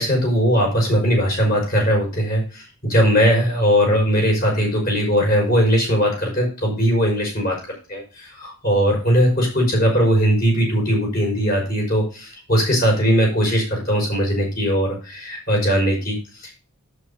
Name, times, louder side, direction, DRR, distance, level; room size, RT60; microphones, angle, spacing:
voice 1, 0.0-7.6 7.9-16.5, equal, 40° left, -1 dB, 5.7 m, -19 dB
11.0 x 8.8 x 2.8 m, 0.35 s
head